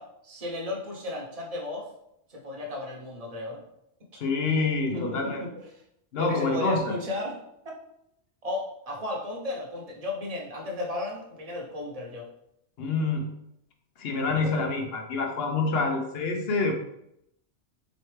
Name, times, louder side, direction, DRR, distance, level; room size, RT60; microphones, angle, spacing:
voice 1, 0.0-1.9 2.3-3.6 4.9-5.8 6.2-7.4 7.6-7.7 8.4-12.3 14.4-14.7, left 2 dB, 35° right, -1 dB, 0.9 m, -34 dB
voice 2, 4.2-5.4 6.1-7.0 12.8-13.3 14.0-16.7, left 3 dB, 60° left, 3 dB, 0.9 m, -27 dB
4.2 x 3.2 x 3.2 m, 0.78 s
omnidirectional pair, 1.2 m